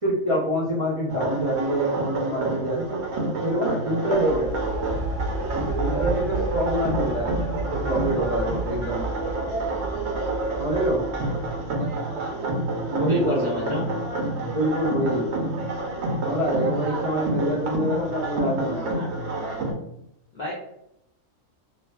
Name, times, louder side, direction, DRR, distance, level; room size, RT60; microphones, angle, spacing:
voice 1, 0.0-3.0 3.4-4.5 5.5-7.4 7.7-9.0 10.6-11.0 12.9-13.9 14.4-15.2 16.2-18.9, right 1 dB, 35° right, -7 dB, 0.5 m, -26 dB
sound 1, 1.1-19.7, right 2 dB, 65° right, 0.8 m, -29 dB
sound 2, 4.1-11.9, right 2 dB, 35° left, 0.9 m, -32 dB
voice 2, 13.0-13.9 20.3-20.5, left 1 dB, 50° left, -6 dB, 0.5 m, -31 dB
2.5 x 2.3 x 2.2 m, 0.80 s
omnidirectional pair, 1.3 m